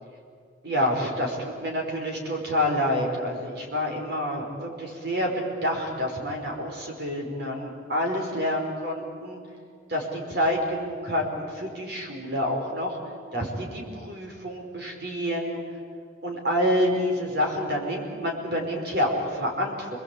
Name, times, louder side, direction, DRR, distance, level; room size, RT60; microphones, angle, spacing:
voice 1, 0.6-9.4 9.9-13.0 13.3-15.6 16.2-20.0, equal, 55° right, 1 dB, 5.1 m, -28 dB
28.0 x 20.5 x 8.6 m, 2.1 s
head